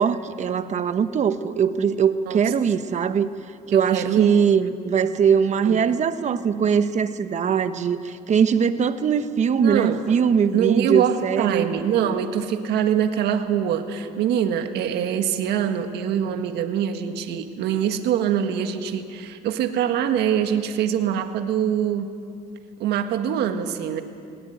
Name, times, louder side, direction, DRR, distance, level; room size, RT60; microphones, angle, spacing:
voice 1, 0.0-3.3 3.7-11.7, right 7 dB, 45° right, 11 dB, 1.1 m, -21 dB
voice 2, 3.9-4.3 5.6-5.8 9.6-10.0 10.5-22.1 22.8-24.0, right 9 dB, 80° right, 7 dB, 1.7 m, -24 dB
19.5 x 19.0 x 9.4 m, 2.4 s
cardioid pair, 110°, 17 cm